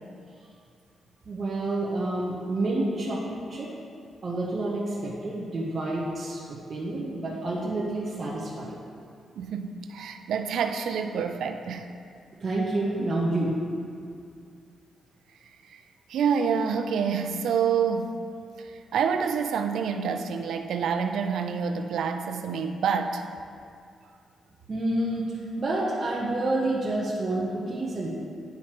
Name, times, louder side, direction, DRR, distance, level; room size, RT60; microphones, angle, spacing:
voice 1, 1.3-3.7 4.2-8.8 12.4-13.6 24.7-28.1, right 2 dB, 30° right, -6 dB, 0.8 m, -29 dB
voice 2, 9.4-11.9 15.7-15.8 16.1-18.1 18.6-23.2, right 6 dB, 75° right, 7 dB, 0.4 m, -27 dB
10.0 x 4.6 x 2.9 m, 2.4 s
wide cardioid pair, 175°, 0 cm